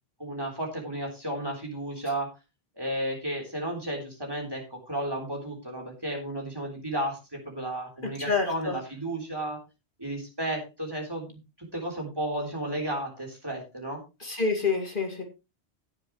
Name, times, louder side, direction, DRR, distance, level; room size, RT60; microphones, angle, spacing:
voice 1, 0.2-2.3 2.8-9.6 10.0-14.0, right 1 dB, 20° right, 1 dB, 3.8 m, -33 dB
voice 2, 8.2-8.7 14.2-15.2, left 4 dB, 50° left, 3 dB, 2.4 m, -27 dB
17.5 x 7.3 x 3.1 m, 0.27 s
omnidirectional pair, 1.1 m